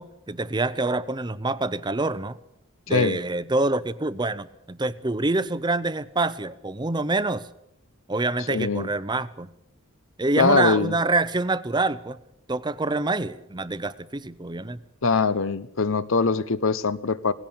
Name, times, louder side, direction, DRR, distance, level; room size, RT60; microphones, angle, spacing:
voice 1, 0.0-2.4 2.9-7.4 8.1-9.5 10.2-12.2 12.5-14.8, right 2 dB, 20° right, 15 dB, 0.7 m, -26 dB
voice 2, 2.9-3.2 8.5-8.9 10.4-10.9 15.0-17.3, left 4 dB, 65° left, 16 dB, 0.9 m, -22 dB
18.5 x 16.5 x 8.8 m, 0.82 s
head